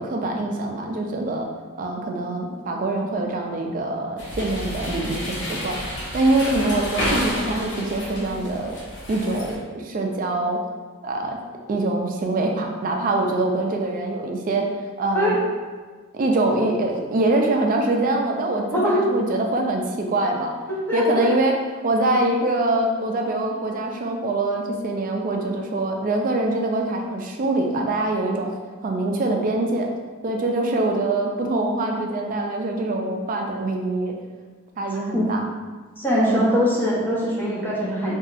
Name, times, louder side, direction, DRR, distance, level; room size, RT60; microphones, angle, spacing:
voice 1, 0.0-1.5 1.8-5.7 6.1-8.8 9.1-10.6 11.0-11.4 11.7-14.6 15.0-15.4 16.1-20.5 20.9-21.5 21.8-28.5 28.8-29.9 30.2-34.1 34.8-35.5 36.3-36.5, right 2 dB, 40° right, 2 dB, 0.3 m, -24 dB
sound 1, 4.2-9.6, equal, 55° left, 0.8 m, -30 dB
voice 2, 18.7-19.0 20.9-21.3 35.1-35.3 36.0-38.2, equal, 10° left, -7 dB, 0.6 m, -22 dB
2.9 x 2.7 x 2.4 m, 1.4 s
head